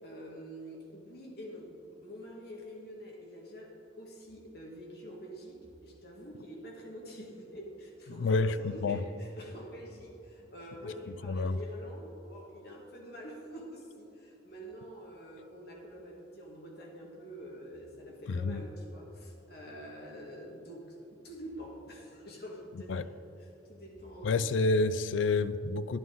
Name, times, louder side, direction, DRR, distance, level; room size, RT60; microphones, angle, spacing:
voice 1, 0.0-1.8 2.0-23.1 23.4-24.6, equal, 55° left, -1 dB, 1.7 m, -46 dB
voice 2, 8.1-8.5 8.8-9.0 11.3-11.6 18.3-18.6 22.9-23.0 24.2-26.0, left 3 dB, 80° left, 14 dB, 0.4 m, -28 dB
11.0 x 10.5 x 3.8 m, 2.9 s
head